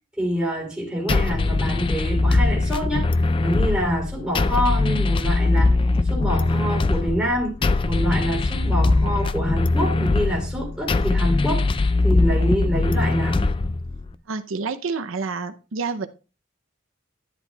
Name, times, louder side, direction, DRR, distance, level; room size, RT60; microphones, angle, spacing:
voice 1, 0.2-3.1 3.4-5.8 6.0-7.6 7.9-11.7 12.0-13.5, equal, 5° right, 3.1 m, -26 dB
sound 1, 1.1-14.1, left 3 dB, 25° left, 0.3 m, -21 dB
voice 2, 14.3-16.1, right 4 dB, 90° right, 0.6 m, -28 dB
10.5 x 10.5 x 2.3 m
head